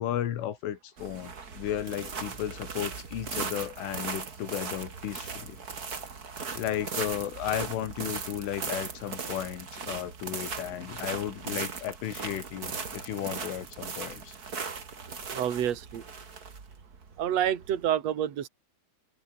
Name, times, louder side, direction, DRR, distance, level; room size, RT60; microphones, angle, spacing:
voice 1, 0.0-5.6 6.5-14.4, left 11 dB, 70° left, 4.6 m, -34 dB
sound 1, 1.0-17.9, right 5 dB, 80° right, 0.8 m, -38 dB
voice 2, 15.3-16.0 17.2-18.5, right 10 dB, 45° right, 2.4 m, -28 dB
omnidirectional pair, 5.9 m